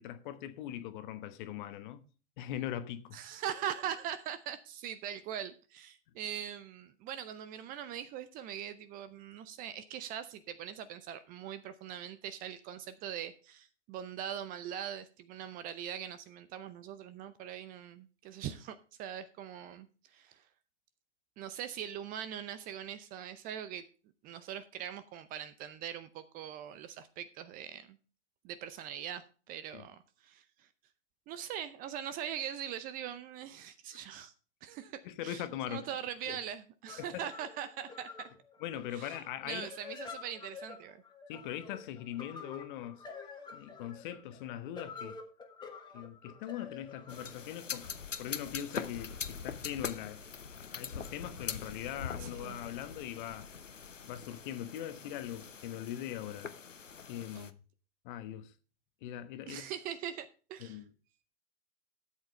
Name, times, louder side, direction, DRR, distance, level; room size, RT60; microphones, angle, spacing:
voice 1, 0.0-2.0 2.4-3.2 29.7-29.8 35.0-35.9 36.3-36.4 37.0-37.2 38.6-39.7 41.3-43.0 43.5-45.2 45.9-47.9 48.2-50.2 50.5-53.5 54.1-56.5 57.1-57.5 58.0-58.5 59.0-59.7 60.6-60.9, left 11 dB, 40° left, 1.3 m, -41 dB
voice 2, 3.1-20.5 21.4-23.9 24.2-28.0 28.4-30.7 31.3-34.3 34.6-38.3 38.9-39.2 39.5-41.0 52.2-52.6 57.3-57.5 59.5-60.8, right 9 dB, 25° right, 0.6 m, -42 dB
sound 1, 36.9-48.5, left 5 dB, 10° left, 1.6 m, -49 dB
sound 2, 47.1-57.5, left 6 dB, 90° left, 0.9 m, -43 dB
13.0 x 8.0 x 3.2 m
figure-of-eight pair, 110°, 37 cm